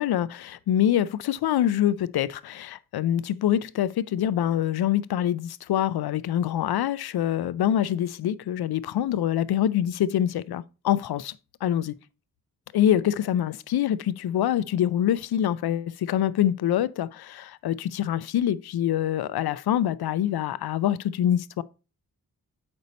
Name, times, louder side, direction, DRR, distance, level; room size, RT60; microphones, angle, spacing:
voice 1, 0.0-11.4 11.6-11.9 12.7-21.6, left 11 dB, 85° left, 0.5 m, -25 dB
6.7 x 5.3 x 4.1 m
cardioid pair, 65°, 37 cm